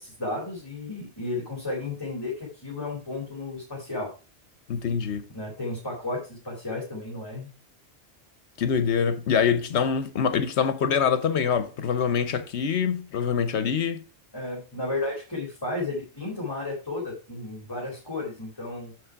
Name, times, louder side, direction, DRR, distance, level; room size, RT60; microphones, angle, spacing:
voice 1, 0.0-4.1 5.3-7.5 14.3-18.9, left 2 dB, 20° left, 2.6 m, -33 dB
voice 2, 4.7-5.2 8.6-14.0, left 7 dB, 75° left, 1.0 m, -25 dB
7.5 x 6.2 x 4.5 m
omnidirectional pair, 1.1 m